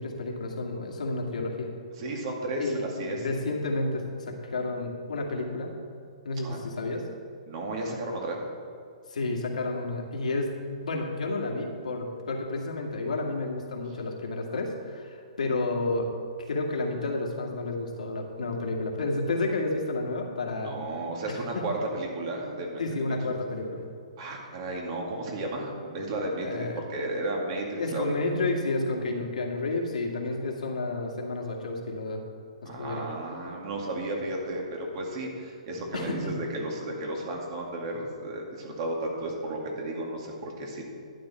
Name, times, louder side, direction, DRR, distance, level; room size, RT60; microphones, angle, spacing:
voice 1, 0.0-1.7 2.6-5.7 6.2-7.0 9.1-16.1 16.5-20.8 21.3-21.6 22.8-23.8 26.4-26.8 27.8-32.2 32.6-33.0 35.9-36.4, left 2 dB, 85° left, 1 dB, 2.1 m, -31 dB
voice 2, 2.0-3.2 6.4-6.6 7.5-8.4 20.5-23.2 24.2-28.0 32.6-40.8, right 1 dB, 45° right, 0 dB, 2.4 m, -33 dB
12.0 x 9.4 x 4.4 m, 2.4 s
hypercardioid pair, 145°, 4 cm